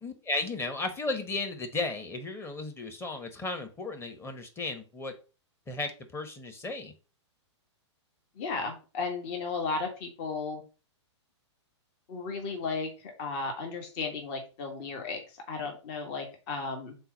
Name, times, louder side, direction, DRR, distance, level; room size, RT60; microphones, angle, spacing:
voice 1, 0.0-5.1 5.7-6.9, left 3 dB, 15° left, 6 dB, 1.1 m, -34 dB
voice 2, 8.4-10.6 12.1-17.0, left 4 dB, 45° left, 3 dB, 1.7 m, -34 dB
4.6 x 4.1 x 5.3 m, 0.34 s
hypercardioid pair, 125°, 16 cm